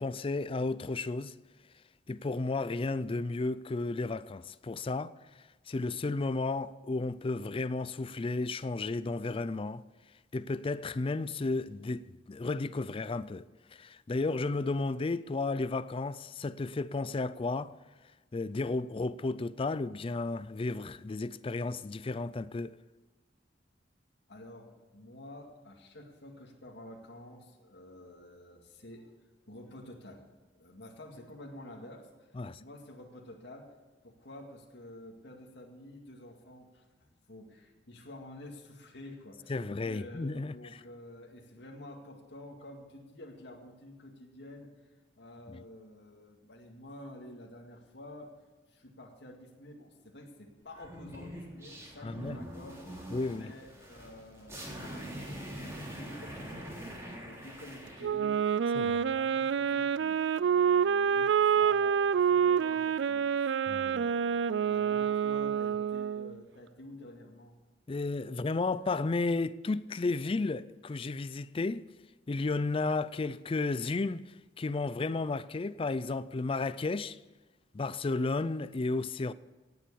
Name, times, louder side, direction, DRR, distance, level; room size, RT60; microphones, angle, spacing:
voice 1, 0.0-1.3 2.1-5.1 5.7-9.8 10.3-13.4 13.7-17.8 18.3-22.8 32.3-32.6 39.5-40.5 45.5-45.6 52.0-52.4 53.1-53.5 58.7-59.0 63.7-64.0 67.9-71.8 72.3-74.2 74.6-77.2 77.7-79.3, left 3 dB, 30° left, 0.4 m, -33 dB
voice 2, 24.3-29.1 29.5-30.3 30.6-32.3 32.6-33.7 34.0-44.7 45.2-48.3 48.7-58.4 58.8-67.5, left 1 dB, 70° left, 2.2 m, -50 dB
sound 1, 50.7-58.1, equal, 15° right, 3.5 m, -44 dB
Wind instrument woodwind instrument, 58.0-66.3, right 7 dB, 75° right, 0.4 m, -27 dB
17.5 x 7.5 x 7.0 m
head